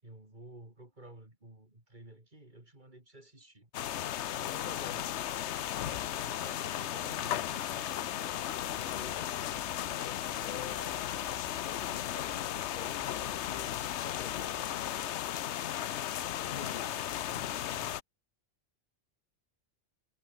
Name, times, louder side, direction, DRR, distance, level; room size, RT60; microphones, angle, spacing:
voice 1, 0.0-3.7 4.4-5.2 5.7-8.4 16.4-18.0, right 1 dB, 40° right, 4.8 m, -53 dB
sound 1, 3.7-18.0, left 11 dB, 75° left, 1.0 m, -35 dB
voice 2, 4.5-5.0 8.7-9.3 9.8-11.1 11.6-14.5 16.5-17.0 17.7-17.8, left 7 dB, 50° left, 0.8 m, -47 dB
sound 2, 8.5-15.0, right 3 dB, 55° right, 2.9 m, -57 dB
sound 3, 13.9-17.6, right 4 dB, 75° right, 2.8 m, -65 dB
omnidirectional pair, 1.2 m